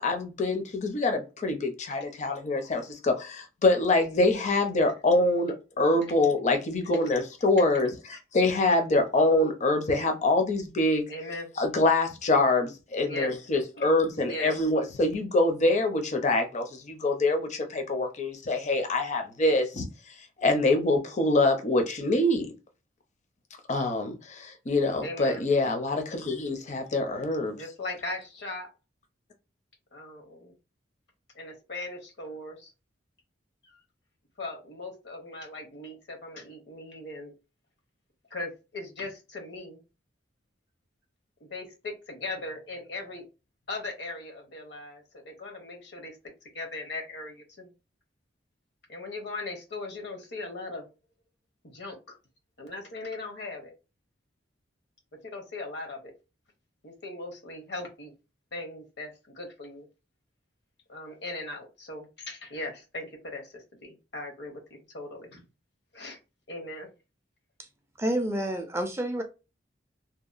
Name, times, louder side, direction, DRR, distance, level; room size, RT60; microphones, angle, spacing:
voice 1, 0.0-11.0 11.6-19.9 20.4-22.5 23.7-27.6, left 2 dB, 40° left, 0.5 m, -25 dB
voice 2, 11.1-11.5 13.0-13.3 13.7-13.9 14.2-14.5 25.0-25.4 27.5-28.7 29.9-30.5 31.3-32.7 33.6-33.7 34.4-37.3 38.3-39.8 41.4-43.2 43.7-46.2 46.4-47.7 48.9-50.9 51.6-52.1 52.6-53.7 55.2-56.1 56.8-58.1 58.5-59.9 60.9-65.4 65.9-66.2 66.5-66.9, left 2 dB, 65° left, 0.9 m, -39 dB
voice 3, 68.0-69.2, right 1 dB, 15° right, 0.3 m, -29 dB
2.8 x 2.1 x 2.4 m
head